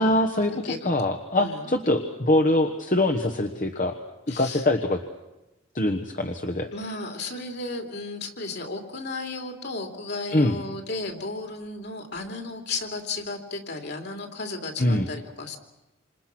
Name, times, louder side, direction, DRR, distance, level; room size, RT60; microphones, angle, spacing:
voice 1, 0.0-4.0 4.3-5.0 5.7-6.7 10.3-10.5 14.8-15.1, left 1 dB, 40° left, 5 dB, 1.3 m, -23 dB
voice 2, 1.4-1.7 4.3-4.6 6.7-15.6, left 3 dB, 55° left, 4 dB, 3.1 m, -34 dB
28.0 x 27.0 x 6.1 m, 0.99 s
head